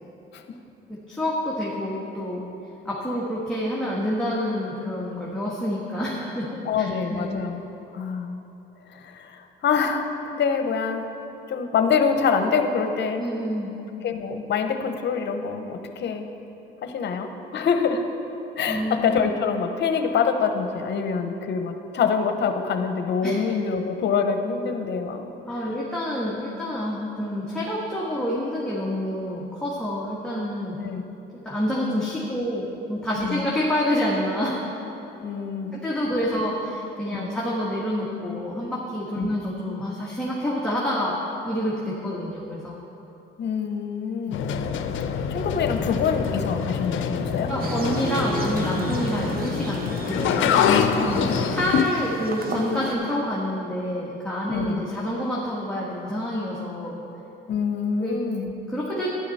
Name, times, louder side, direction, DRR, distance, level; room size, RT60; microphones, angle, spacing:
voice 1, 0.9-2.5 2.8-7.4 13.2-13.7 18.7-19.2 23.2-23.4 25.4-30.8 31.3-34.6 35.7-41.2 41.4-42.8 44.3-44.4 47.5-50.4 51.1-57.0 58.0-58.2 58.7-59.1, equal, 5° left, -6 dB, 1.6 m, -28 dB
voice 2, 6.6-7.6 7.9-8.4 8.9-11.1 11.5-13.3 14.0-16.3 16.8-18.0 18.6-25.3 30.8-31.0 33.2-33.4 35.2-35.8 37.1-37.3 39.2-39.3 43.4-44.4 45.3-47.5 50.5-51.4 54.5-54.8 57.5-58.5, left 6 dB, 60° left, 7 dB, 0.9 m, -25 dB
sound 1, 44.3-51.8, left 7 dB, 80° left, 0.6 m, -25 dB
sound 2, 47.6-52.9, right 3 dB, 50° right, 1.1 m, -32 dB
11.5 x 10.0 x 4.2 m, 3.0 s
cardioid pair, 90°, 20 cm